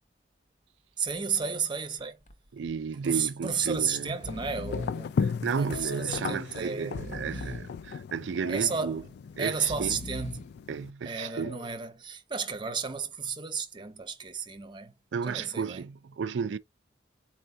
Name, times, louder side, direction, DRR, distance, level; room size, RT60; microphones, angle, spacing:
voice 1, 1.0-2.2 3.0-6.9 7.3-7.5 8.5-9.0 9.4-10.5 11.0-14.9 15.3-15.9, right 6 dB, 25° right, 0.8 m, -33 dB
Breathing, 2.0-2.3 2.7-2.8 3.6-5.1 5.7-6.3 6.8-7.8 8.4-9.0 9.5-10.5 11.1-11.8, left 2 dB, 40° left, 0.7 m, -41 dB
voice 2, 2.5-4.2 5.2-9.0 9.4-10.0 10.7-11.6 15.1-16.6, right 6 dB, 75° right, 0.4 m, -33 dB
sound 1, 3.7-10.9, left 5 dB, 60° left, 0.3 m, -36 dB
4.4 x 2.6 x 4.4 m
head